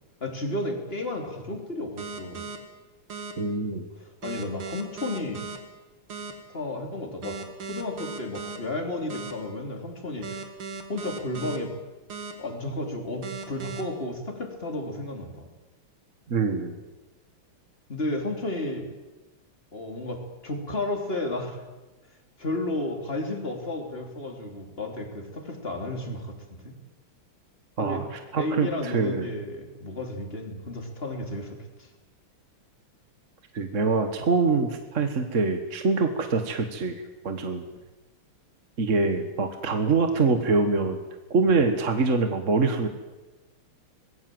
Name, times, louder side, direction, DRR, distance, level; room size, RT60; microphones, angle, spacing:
voice 1, 0.2-2.5 4.0-5.5 6.5-10.5 10.9-11.7 12.4-15.5 17.9-18.9 19.7-21.6 22.4-26.8 27.8-28.1 28.3-31.9 41.4-41.5, left 2 dB, 25° left, 3 dB, 3.5 m, -33 dB
sound 1, 2.0-2.6 3.1-3.3 4.2-5.6 6.1-6.3 7.2-8.6 9.1-9.3 10.2-11.6 12.1-12.3 13.2-13.8, right 5 dB, 75° right, 3.1 m, -37 dB
voice 2, 3.4-3.9 16.3-16.7 27.8-29.3 33.5-37.6 38.8-41.0 41.3-42.9, right 4 dB, 40° right, 6 dB, 1.7 m, -24 dB
24.5 x 20.5 x 7.8 m, 1.2 s
omnidirectional pair, 2.4 m